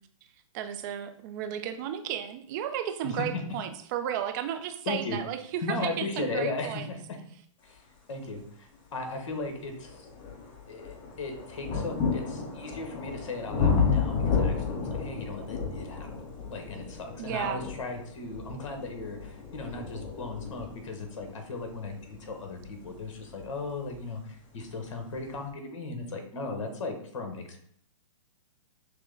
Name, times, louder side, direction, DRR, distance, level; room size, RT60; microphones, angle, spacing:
voice 1, 0.5-6.9 17.2-17.6, right 10 dB, 35° right, 9 dB, 0.5 m, -33 dB
voice 2, 4.9-5.2 5.6-7.0 7.6-7.8 8.1-10.1 10.7-16.1 16.5-27.6, left 3 dB, 60° left, 5 dB, 1.2 m, -37 dB
sound 1, 8.7-8.8 9.4-24.1 25.0-25.1, left 5 dB, 30° left, 1.2 m, -32 dB
6.1 x 2.1 x 3.7 m, 0.65 s
hypercardioid pair, 135°, 17 cm